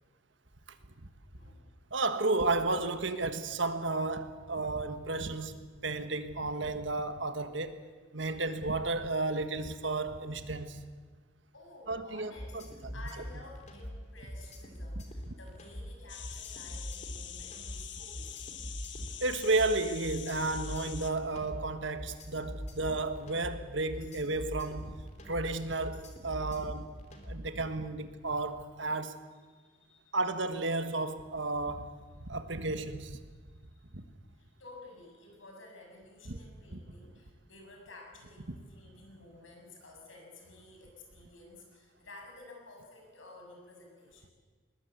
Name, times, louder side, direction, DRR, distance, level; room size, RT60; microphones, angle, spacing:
voice 1, 1.3-1.7 11.5-18.6 29.5-30.2 33.7-33.8 34.3-44.3, left 2 dB, 85° left, 6.7 m, -53 dB
voice 2, 1.9-7.8 8.1-10.8 11.9-12.9 19.0-25.0 25.2-26.9 27.2-29.2 30.1-31.9 32.2-33.2 33.9-34.0 36.3-36.4, right 3 dB, 75° right, 1.6 m, -33 dB
sound 1, 12.4-27.6, equal, 35° left, 3.0 m, -43 dB
sound 2, 16.1-21.1, left 10 dB, 65° left, 1.5 m, -45 dB
21.0 x 20.5 x 8.2 m
head